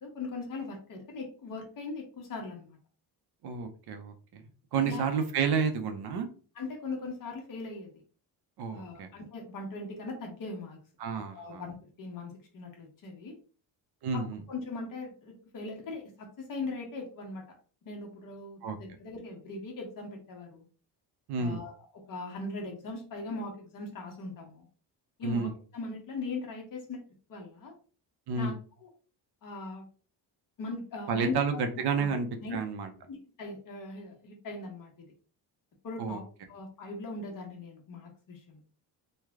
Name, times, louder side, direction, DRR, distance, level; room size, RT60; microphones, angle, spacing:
voice 1, 0.0-2.8 4.8-5.0 6.6-7.9 8.7-10.8 11.3-13.4 14.1-14.2 14.5-17.4 17.8-20.6 21.4-21.7 22.1-24.6 25.2-27.0 27.3-27.7 28.3-28.5 28.8-28.9 29.4-29.8 30.6-31.6 32.0-32.1 32.4-32.6 33.1-34.9 35.8-36.2 36.5-38.6, left 3 dB, 50° left, 1 dB, 1.2 m, -39 dB
voice 2, 3.4-4.4 4.7-6.3 8.6-9.1 11.0-11.6 14.0-14.4 18.6-18.8 21.3-21.6 25.2-25.5 28.3-28.6 31.1-32.9 36.0-36.2, right 5 dB, 65° right, 7 dB, 0.7 m, -30 dB
3.2 x 2.3 x 3.5 m, 0.39 s
cardioid pair, 150°, 42 cm